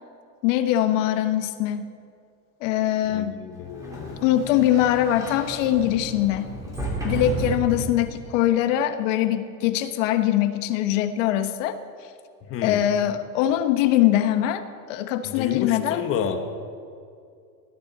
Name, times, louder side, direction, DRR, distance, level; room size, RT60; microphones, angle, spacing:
voice 1, 0.4-1.9 2.6-3.4 4.2-6.5 7.0-11.8 12.6-16.0, left 12 dB, 55° left, 9 dB, 1.2 m, -22 dB
voice 2, 3.1-4.2 12.4-12.8 15.2-16.4, left 8 dB, 30° left, 6 dB, 1.2 m, -30 dB
Sliding door, 3.6-8.3, right 1 dB, 5° right, 2.9 m, -33 dB
20.0 x 14.0 x 4.1 m, 2.3 s
supercardioid pair, 160°, 46 cm